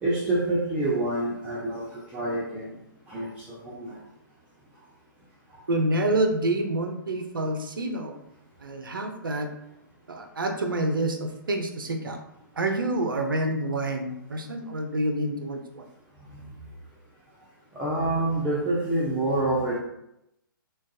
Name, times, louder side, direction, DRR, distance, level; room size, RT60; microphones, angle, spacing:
voice 1, 0.0-2.7 3.1-4.0 16.3-16.4 17.7-19.8, right 2 dB, 10° right, -7 dB, 0.4 m, -27 dB
voice 2, 5.7-8.2 8.6-9.5 10.1-12.2 12.6-15.8, right 1 dB, 70° right, 4 dB, 0.5 m, -27 dB
3.7 x 2.3 x 2.6 m, 0.84 s
figure-of-eight pair, 125°, 12 cm